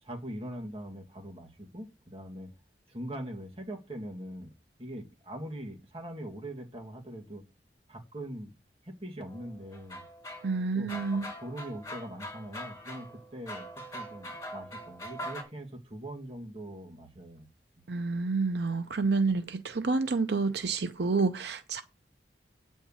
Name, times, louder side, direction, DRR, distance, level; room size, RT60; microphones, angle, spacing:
voice 1, 0.0-2.5 2.9-4.5 4.8-7.4 7.9-8.5 8.8-10.0 10.7-17.5, right 1 dB, 30° right, 2.0 m, -42 dB
sound 1, 9.3-15.4, equal, 20° left, 3.1 m, -43 dB
voice 2, 10.4-11.3 17.9-21.8, right 4 dB, 70° right, 0.6 m, -29 dB
9.0 x 4.5 x 7.1 m
head